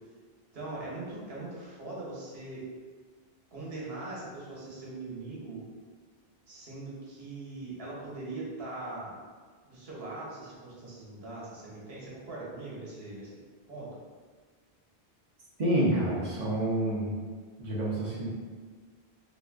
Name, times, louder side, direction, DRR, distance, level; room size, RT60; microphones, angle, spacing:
voice 1, 0.5-2.6 3.5-5.6 6.5-9.1 9.6-13.4 13.7-13.9, right 2 dB, 75° right, -6 dB, 1.2 m, -41 dB
voice 2, 15.6-17.2 17.6-18.4, right 1 dB, 50° right, -6 dB, 0.8 m, -28 dB
3.4 x 2.7 x 2.4 m, 1.5 s
omnidirectional pair, 1.0 m